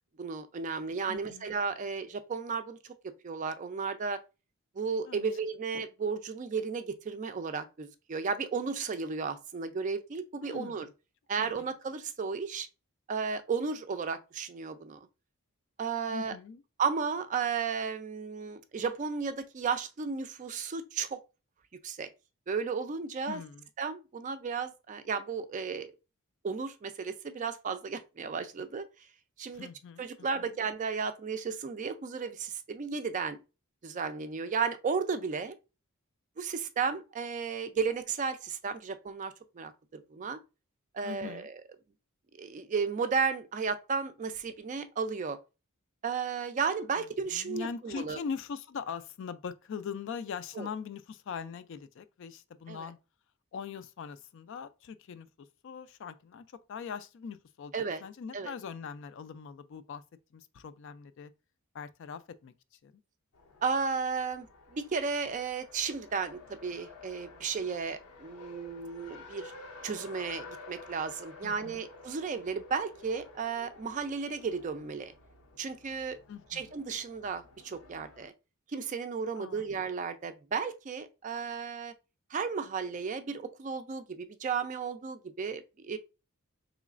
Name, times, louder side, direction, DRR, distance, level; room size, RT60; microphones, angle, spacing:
voice 1, 0.2-4.2 4.8-10.9 11.3-12.7 13.1-15.0 15.8-16.4 16.8-21.2 21.8-22.1 22.5-23.4 23.8-25.9 26.4-28.8 29.4-29.7 30.0-33.4 33.8-35.6 36.4-40.4 40.9-41.6 42.4-45.4 46.0-48.2 50.6-50.7 52.7-52.9 57.7-58.0 58.3-58.5 63.6-69.5 69.8-75.1 75.6-76.2 76.5-78.3 78.7-81.9 82.3-86.0, right 5 dB, 35° right, 0.3 m, -34 dB
voice 2, 1.1-1.5 5.1-5.3 10.4-10.9 11.4-11.7 16.1-16.6 23.3-23.7 29.5-30.0 30.3-30.5 41.0-41.5 47.3-53.0 53.5-55.3 55.6-57.7 58.0-60.0 60.3-61.3 61.7-62.5 62.8-62.9 71.4-71.9 76.3-76.7 79.3-79.7, left 6 dB, 60° left, 0.3 m, -41 dB
Race car auto racing, 63.3-78.3, left 3 dB, 85° left, 0.7 m, -51 dB
3.9 x 3.1 x 2.4 m
head